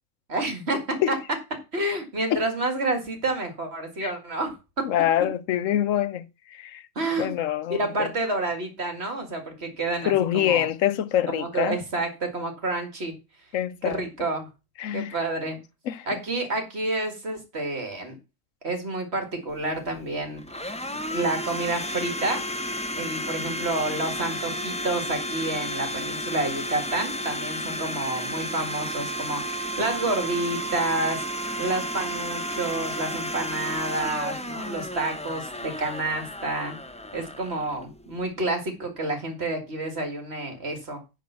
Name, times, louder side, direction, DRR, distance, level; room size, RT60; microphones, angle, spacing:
voice 1, 0.3-1.2 1.7-4.9 7.0-7.3 7.7-10.7 11.3-13.1 13.8-14.5 14.9-15.6 16.1-18.2 18.6-20.4 21.1-22.4 23.0-36.8 37.1-41.0, right 2 dB, 50° right, 2.2 m, -29 dB
voice 2, 4.9-6.9 7.2-8.1 10.0-11.8 13.5-14.0 14.8-15.2 15.9-16.2, left 11 dB, 75° left, 1.0 m, -25 dB
Domestic sounds home sounds, 19.5-38.3, equal, 10° left, 0.4 m, -32 dB
10.5 x 3.8 x 6.8 m
omnidirectional pair, 1.4 m